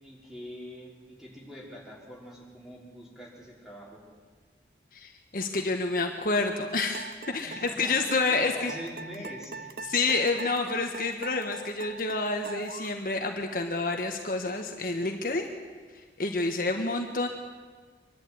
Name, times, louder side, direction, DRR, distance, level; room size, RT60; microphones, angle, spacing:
voice 1, 0.0-4.0 7.4-7.9 8.3-9.7, equal, ahead, -4 dB, 5.2 m, -44 dB
voice 2, 4.9-8.7 9.8-15.4 15.9-17.3, left 3 dB, 50° left, 3 dB, 1.6 m, -29 dB
sound 1, 6.9-13.0, right 4 dB, 55° right, 0.9 m, -42 dB
25.0 x 11.5 x 9.5 m, 1.5 s
head